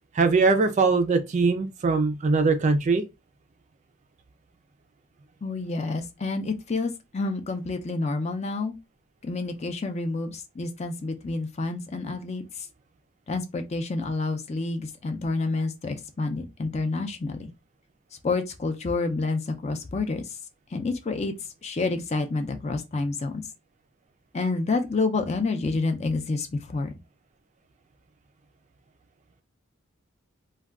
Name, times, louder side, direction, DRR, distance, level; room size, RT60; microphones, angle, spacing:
voice 1, 0.1-3.0, right 4 dB, 35° right, 0.4 m, -21 dB
voice 2, 5.4-8.7 9.2-12.4 13.3-17.5 18.2-20.3 20.7-21.3 21.6-23.4 24.3-27.0, left 3 dB, 30° left, 0.4 m, -28 dB
2.3 x 2.2 x 3.5 m
head